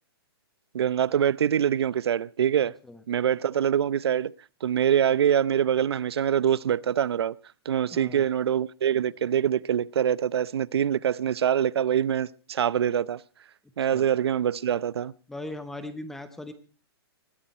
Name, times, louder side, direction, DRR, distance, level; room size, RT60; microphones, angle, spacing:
voice 1, 0.7-2.8 3.1-4.3 4.6-7.4 7.7-13.2 13.8-15.1, right 9 dB, 75° right, 0.7 m, -24 dB
voice 2, 7.9-8.3 13.9-14.0 15.3-16.5, left 1 dB, 5° left, 0.8 m, -38 dB
20.5 x 14.5 x 4.3 m
hypercardioid pair, 175°, 13 cm